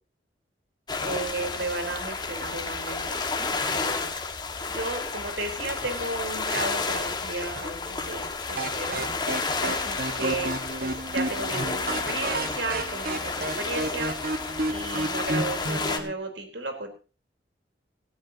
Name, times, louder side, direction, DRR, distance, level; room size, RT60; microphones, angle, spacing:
sound 1, 0.9-16.0, left 4 dB, 25° left, 1.8 m, -31 dB
voice 1, 1.0-3.2 3.5-4.1 4.7-9.0 9.6-10.5 10.8-14.1 14.7-16.9, right 2 dB, 80° right, 5 dB, 4.0 m, -34 dB
sound 2, 8.6-16.1, right 2 dB, 55° right, 1.5 m, -32 dB
19.0 x 14.5 x 2.9 m, 0.32 s
head